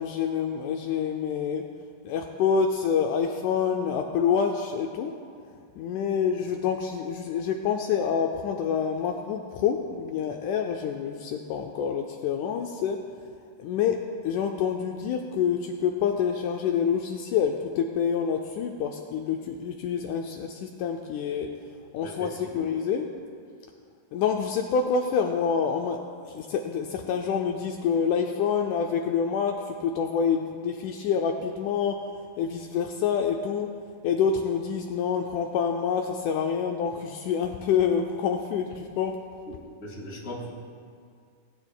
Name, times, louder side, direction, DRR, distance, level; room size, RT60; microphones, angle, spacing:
voice 1, 0.0-1.7 2.0-5.1 5.5-13.0 13.6-21.5 21.9-23.1 24.1-26.0 26.2-32.1 32.4-33.7 34.0-39.2, left 7 dB, 80° left, 2 dB, 2.0 m, -27 dB
voice 2, 22.0-22.7 39.5-40.5, equal, 30° left, -4 dB, 2.2 m, -39 dB
18.5 x 9.6 x 2.2 m, 2.3 s
omnidirectional pair, 3.7 m